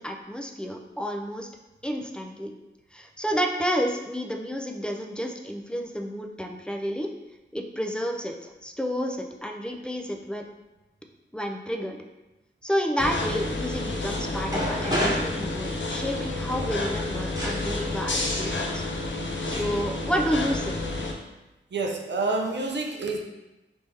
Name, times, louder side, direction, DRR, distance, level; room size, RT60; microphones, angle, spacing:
voice 1, 0.0-1.5 1.8-2.5 2.9-7.1 7.5-10.5 11.3-12.0 12.6-18.8 19.5-20.8, equal, 5° left, 3 dB, 0.4 m, -30 dB
sound 1, 13.0-21.1, left 2 dB, 70° left, 0.5 m, -30 dB
sound 2, 14.5-16.1 17.4-17.6 18.7-18.8 19.5-19.7 20.0-20.5, equal, 20° right, 1.1 m, -29 dB
voice 2, 21.7-23.2, right 3 dB, 65° right, 2 dB, 0.5 m, -28 dB
3.4 x 2.7 x 3.3 m, 1.0 s
wide cardioid pair, 80°, 20 cm